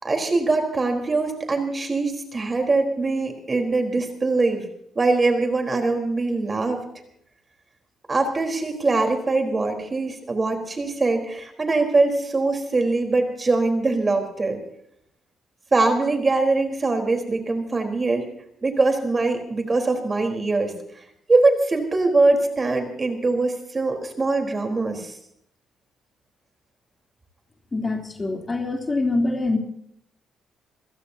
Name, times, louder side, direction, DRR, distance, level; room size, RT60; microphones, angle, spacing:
voice 1, 0.0-4.6 5.0-6.9 8.1-14.6 15.7-18.3 18.6-20.7 21.3-25.1, right 3 dB, 30° right, 4 dB, 4.1 m, -22 dB
voice 2, 27.7-29.6, left 2 dB, 25° left, 2 dB, 3.4 m, -24 dB
27.5 x 16.5 x 2.8 m, 0.73 s
cardioid pair, 90°, 0 cm